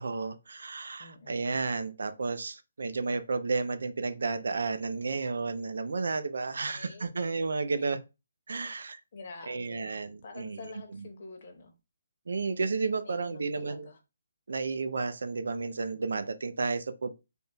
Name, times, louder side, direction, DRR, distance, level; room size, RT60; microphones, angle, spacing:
voice 1, 0.0-8.0 8.5-9.0 9.5-11.1 12.3-13.9 14.5-17.2, right 4 dB, 70° right, 0.5 m, -32 dB
voice 2, 1.0-1.6 6.7-7.1 7.7-7.9 9.1-11.7 13.0-14.0, left 3 dB, 40° left, 0.9 m, -48 dB
3.5 x 2.3 x 4.1 m
hypercardioid pair, 175°, 0 cm